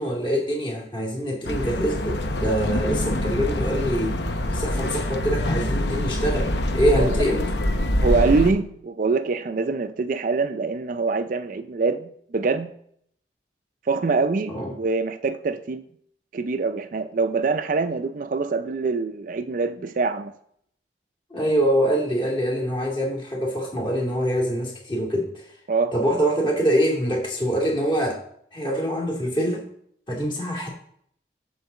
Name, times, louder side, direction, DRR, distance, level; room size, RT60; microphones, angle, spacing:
voice 1, 0.0-4.2 4.5-7.5 14.5-14.7 21.3-25.4 25.9-28.2 28.5-29.6 30.1-30.7, equal, 30° left, 2.3 m, -24 dB
sound 1, 1.4-8.5, left 1 dB, 75° left, 0.9 m, -25 dB
voice 2, 8.0-12.7 13.9-15.8 16.3-20.3 25.7-25.9, right 4 dB, 50° right, 0.4 m, -24 dB
8.1 x 3.9 x 6.8 m
head